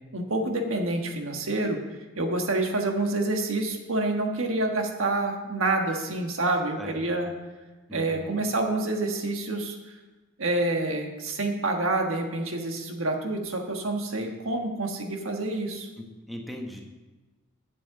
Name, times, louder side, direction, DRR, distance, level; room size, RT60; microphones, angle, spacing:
voice 1, 0.0-1.8 2.2-7.3 7.9-9.9 10.4-15.9, right 2 dB, 75° right, 3 dB, 1.4 m, -28 dB
voice 2, 6.8-7.3 7.9-8.4 14.2-14.3 16.0-16.8, left 1 dB, ahead, 1 dB, 1.1 m, -40 dB
8.5 x 7.5 x 7.1 m, 1.2 s
head